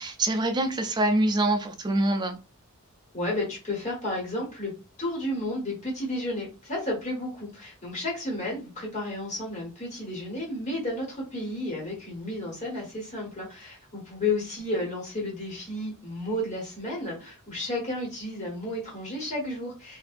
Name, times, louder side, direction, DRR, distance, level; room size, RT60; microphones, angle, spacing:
voice 1, 0.0-2.4, right 1 dB, 20° right, 0.4 m, -25 dB
voice 2, 3.1-4.7 5.0-20.0, left 1 dB, 35° left, 1.4 m, -32 dB
2.7 x 2.5 x 2.5 m
head